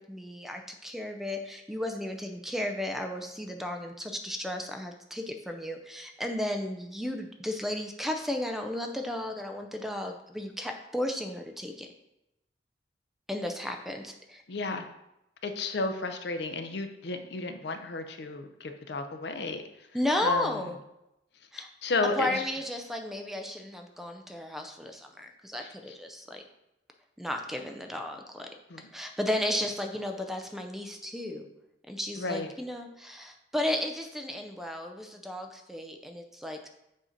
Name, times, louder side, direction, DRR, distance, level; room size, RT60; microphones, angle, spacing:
voice 1, 0.1-11.9 13.3-14.4 19.9-20.8 21.5-21.7 22.2-26.4 27.2-28.5 28.9-31.5 31.9-36.7, left 1 dB, ahead, 4 dB, 0.4 m, -34 dB
voice 2, 14.5-14.9 15.4-19.9 20.2-20.7 21.8-22.4 25.6-25.7 28.7-28.8 32.2-32.5, left 3 dB, 65° left, 7 dB, 0.6 m, -33 dB
7.4 x 2.7 x 5.0 m, 0.88 s
head